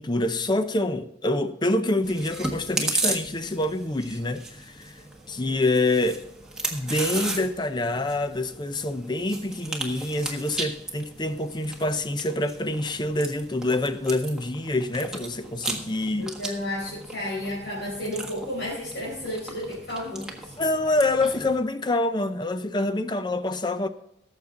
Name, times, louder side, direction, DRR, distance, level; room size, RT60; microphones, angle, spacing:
voice 1, 0.0-4.9 5.3-6.2 6.7-16.3 20.6-23.9, left 2 dB, 25° left, 0.6 m, -26 dB
Chewing mastication, 2.0-21.6, right 2 dB, 5° right, 1.5 m, -36 dB
voice 2, 16.2-20.5, left 1 dB, 65° left, 4.9 m, -32 dB
17.5 x 7.4 x 3.8 m
head